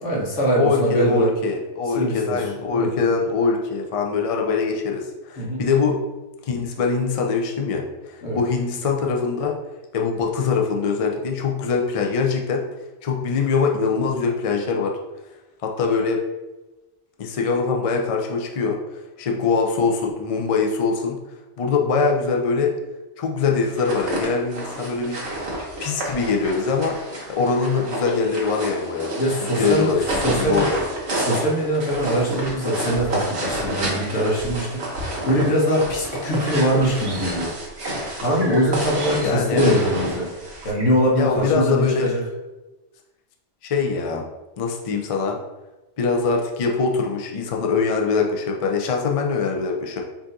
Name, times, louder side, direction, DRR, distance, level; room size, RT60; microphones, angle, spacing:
voice 1, 0.0-1.3 1.8-2.4 2.7-3.1 5.4-5.6 8.2-8.4 29.2-29.9 30.2-30.7 31.1-37.5 38.2-40.3 40.6-42.2, equal, 80° left, -3 dB, 1.4 m, -22 dB
voice 2, 0.6-6.0 6.5-7.8 8.1-9.6 9.9-12.6 13.0-15.0 15.6-16.2 17.2-18.8 19.2-21.2 21.6-22.7 23.2-25.2 25.8-27.0 27.3-29.1 29.6-30.8 39.2-39.8 41.2-42.1 43.6-44.2 44.6-45.4 46.0-50.0, left 5 dB, 50° left, 1 dB, 0.4 m, -23 dB
sound 1, 23.6-40.7, right 1 dB, 60° right, 1.4 m, -29 dB
sound 2, 36.3-41.5, right 1 dB, 25° right, 0.7 m, -39 dB
4.7 x 2.7 x 3.8 m, 1.0 s
omnidirectional pair, 1.2 m